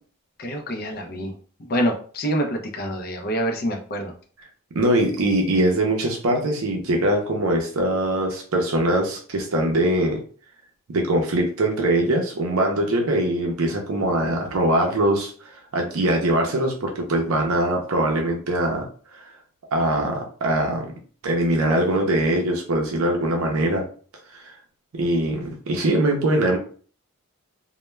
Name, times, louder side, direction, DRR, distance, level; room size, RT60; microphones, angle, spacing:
voice 1, 0.4-1.3 1.6-4.1, equal, 40° left, 4 dB, 0.4 m, -26 dB
voice 2, 4.7-10.2 10.9-18.9 19.1-19.3 19.7-20.9 21.2-23.9 24.3-24.5 24.9-26.6, right 1 dB, 70° right, 2 dB, 0.5 m, -22 dB
2.1 x 2.1 x 3.1 m, 0.43 s
head